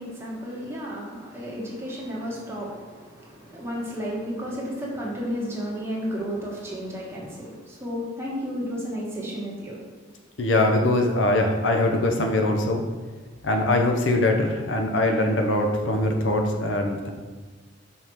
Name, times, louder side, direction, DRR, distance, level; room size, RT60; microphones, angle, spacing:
voice 1, 0.0-9.8, equal, 15° right, -5 dB, 1.5 m, -32 dB
voice 2, 10.4-12.8 13.4-17.1, left 1 dB, 80° left, 3 dB, 0.9 m, -22 dB
5.7 x 5.1 x 4.7 m, 1.4 s
head